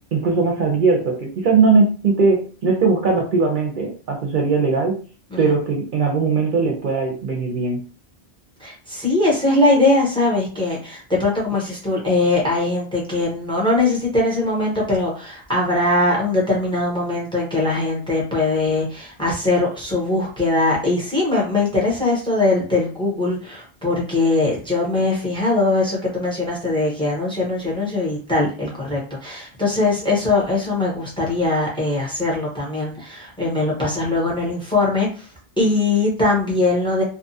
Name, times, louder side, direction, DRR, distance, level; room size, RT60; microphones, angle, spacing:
voice 1, 0.1-5.0 5.4-7.8, right 4 dB, 60° right, 0 dB, 0.7 m, -19 dB
voice 2, 8.6-35.3 35.6-37.0, left 2 dB, 5° left, -2 dB, 0.8 m, -21 dB
2.6 x 2.3 x 2.6 m, 0.38 s
omnidirectional pair, 1.0 m